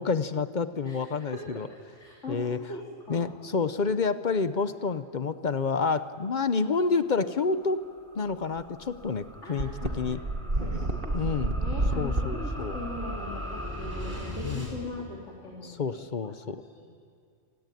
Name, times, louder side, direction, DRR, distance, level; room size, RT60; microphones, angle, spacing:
voice 1, 0.0-1.7 2.3-2.6 3.1-7.8 8.1-9.7 10.0-10.2 11.1-11.5 12.0-12.8 14.4-14.8 15.6-16.6, left 4 dB, 45° left, 12 dB, 0.8 m, -29 dB
voice 2, 2.0-2.4 2.7-2.8 3.1-3.3 9.4-9.9 10.6-15.8 16.2-16.3 16.8-16.9, left 2 dB, 80° left, -3 dB, 3.5 m, -40 dB
sound 1, 6.9-14.7, equal, 10° right, 4.0 m, -40 dB
sound 2, 8.6-8.7 8.9-9.0 9.6-14.8, right 2 dB, 50° right, 2.3 m, -31 dB
26.0 x 17.5 x 9.2 m, 2.3 s
omnidirectional pair, 1.2 m